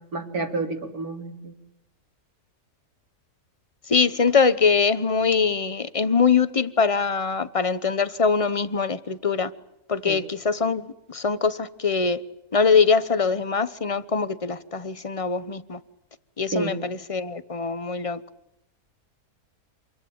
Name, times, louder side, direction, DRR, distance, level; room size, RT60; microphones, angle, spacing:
voice 1, 0.1-1.5 10.1-10.2 16.5-16.8, right 3 dB, 65° right, 3.9 m, -29 dB
voice 2, 3.9-9.5 9.9-10.8 11.1-12.2 12.5-15.8 16.4-18.2, left 5 dB, 25° left, 1.0 m, -23 dB
27.5 x 22.0 x 8.9 m
omnidirectional pair, 1.6 m